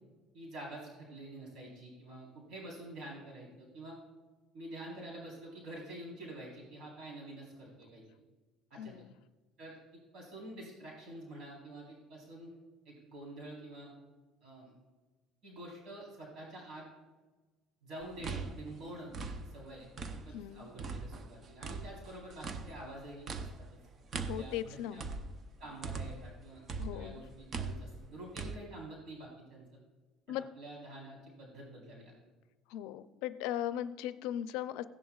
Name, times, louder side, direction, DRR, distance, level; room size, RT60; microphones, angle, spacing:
voice 1, 0.3-4.0 4.5-8.0 8.7-9.0 9.6-9.8 10.1-12.5 12.9-13.9 14.4-14.7 15.4-16.8 17.8-23.8 24.3-25.0 25.6-26.6 26.9-29.7 30.3-32.1, right 1 dB, 55° right, -3 dB, 3.9 m, -48 dB
voice 2, 8.7-9.1 20.3-20.7 24.3-25.0 26.8-27.2 30.3-30.4 32.7-34.8, left 11 dB, 85° left, 13 dB, 0.5 m, -38 dB
sound 1, 18.0-20.5 20.8-26.4 26.7-28.6, right 4 dB, 35° right, 0.7 m, -41 dB
16.5 x 11.0 x 2.4 m, 1.3 s
cardioid pair, 145°, 0 cm